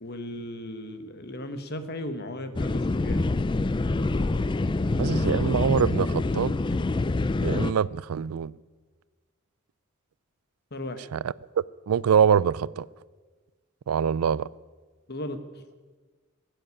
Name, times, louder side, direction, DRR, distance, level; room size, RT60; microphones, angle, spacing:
voice 1, 0.0-3.2 10.7-11.1 15.1-15.6, left 1 dB, 50° left, 1.4 m, -36 dB
sound 1, 2.6-7.7, left 2 dB, 20° left, 0.4 m, -26 dB
voice 2, 5.0-6.5 7.4-8.5 11.1-11.2 11.9-12.9 13.9-14.5, right 7 dB, 85° right, 0.4 m, -24 dB
18.0 x 7.8 x 9.7 m
head